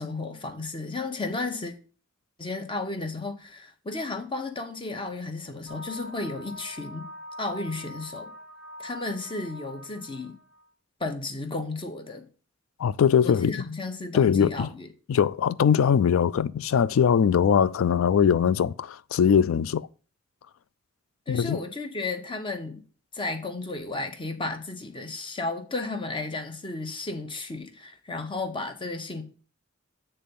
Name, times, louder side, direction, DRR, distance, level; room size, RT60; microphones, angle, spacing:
voice 1, 0.0-1.7 2.4-7.1 7.4-8.3 8.8-10.4 11.0-12.3 13.2-14.9 21.3-22.8 23.1-29.2, left 3 dB, 25° left, 0.9 m, -33 dB
sound 1, 5.7-10.6, equal, ahead, 1.1 m, -43 dB
voice 2, 12.8-13.5 14.1-14.7 15.1-19.9 21.3-21.6, left 7 dB, 85° left, 0.3 m, -21 dB
8.4 x 3.4 x 5.4 m
head